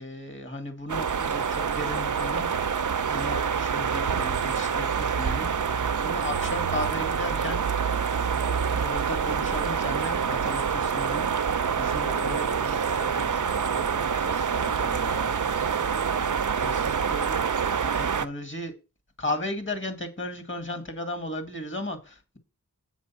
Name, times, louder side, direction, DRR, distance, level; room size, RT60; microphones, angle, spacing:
voice 1, 0.0-2.5 3.0-5.5 6.0-7.6 8.3-12.6 16.6-18.7 19.2-22.4, left 1 dB, 35° left, 2.2 m, -35 dB
sound 1, 0.9-18.3, right 6 dB, 60° right, 0.6 m, -26 dB
voice 2, 12.0-16.1, left 2 dB, 20° left, 0.6 m, -43 dB
8.0 x 6.1 x 5.7 m
wide cardioid pair, 55°, 36 cm